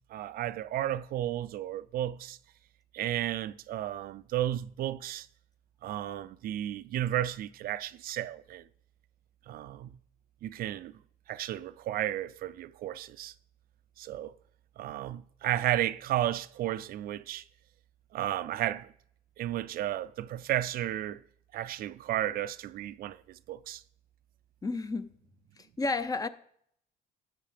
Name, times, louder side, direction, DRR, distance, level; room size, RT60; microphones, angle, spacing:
voice 1, 0.1-2.4 2.9-5.3 5.8-8.6 9.5-10.0 10.4-10.9 11.3-13.3 14.0-14.3 14.8-17.4 18.1-18.9 19.4-21.2 21.5-23.8, right 13 dB, 60° right, 0.4 m, -33 dB
voice 2, 24.6-25.2 25.6-26.3, left 3 dB, 20° left, 0.5 m, -32 dB
11.5 x 7.5 x 3.4 m
cardioid pair, 110°, 17 cm